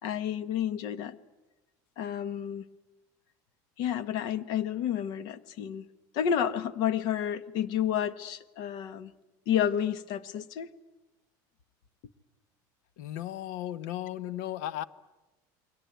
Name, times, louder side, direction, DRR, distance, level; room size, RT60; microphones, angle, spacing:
voice 1, 0.0-1.2 2.0-2.6 3.8-5.9 6.1-9.1 9.5-10.7, left 9 dB, 50° left, 15 dB, 1.2 m, -30 dB
voice 2, 13.0-14.8, left 13 dB, 85° left, 17 dB, 1.0 m, -35 dB
28.5 x 22.0 x 9.3 m, 1.1 s
cardioid pair, 175°, 9 cm